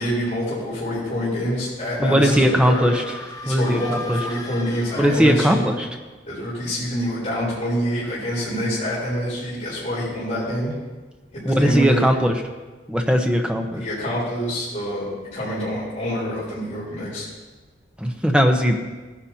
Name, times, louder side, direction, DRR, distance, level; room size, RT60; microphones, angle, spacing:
voice 1, 0.0-3.0 3.4-5.7 6.3-10.7 11.3-12.2 13.7-17.2, equal, 40° left, -10 dB, 3.8 m, -26 dB
voice 2, 2.0-3.0 3.5-4.2 5.0-5.9 11.4-12.3 12.9-13.8 18.0-18.8, equal, 5° right, 3 dB, 0.8 m, -19 dB
sound 1, 2.1-5.8, left 2 dB, 20° left, 0.9 m, -37 dB
17.0 x 10.0 x 2.8 m, 1.3 s
head